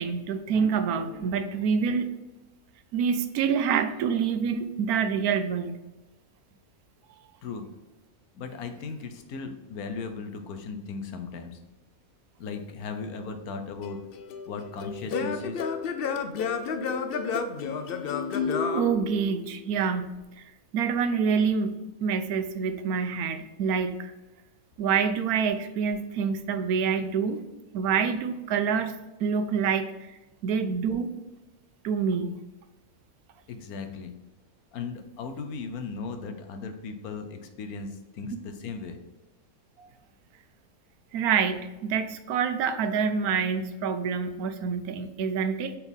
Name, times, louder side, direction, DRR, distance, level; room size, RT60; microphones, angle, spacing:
voice 1, 0.0-2.1 2.9-5.8 18.7-20.2 20.7-24.1 24.8-27.4 27.7-28.9 29.2-30.2 30.4-31.1 31.8-32.3 39.8-39.9 41.1-45.8, right 6 dB, 90° right, 9 dB, 1.1 m, -27 dB
voice 2, 8.3-11.6 12.4-14.0 14.5-15.6 33.5-34.1 34.7-39.0, left 4 dB, 90° left, 7 dB, 1.3 m, -37 dB
Singing / Plucked string instrument, 13.8-19.7, left 5 dB, 65° left, 0.5 m, -31 dB
4.5 x 4.2 x 5.3 m, 1.1 s
omnidirectional pair, 1.5 m